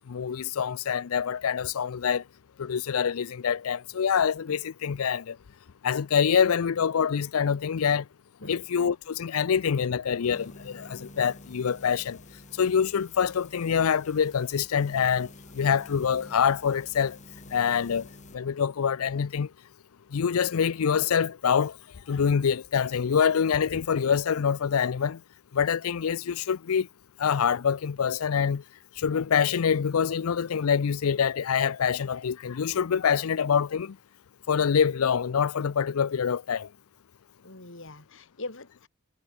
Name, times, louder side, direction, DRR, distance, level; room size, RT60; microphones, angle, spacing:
voice 1, 0.1-2.2 2.6-5.4 5.8-8.0 8.5-12.2 12.6-15.3 15.5-17.2 17.5-18.1 18.3-19.5 20.1-21.8 22.1-25.2 25.5-26.9 27.2-28.6 29.0-34.0 34.5-36.7, left 7 dB, 80° left, 0.5 m, -25 dB
sound 1, 10.1-18.4, left 2 dB, 35° left, 6.1 m, -49 dB
voice 2, 37.4-38.9, left 2 dB, 60° left, 3.7 m, -41 dB
head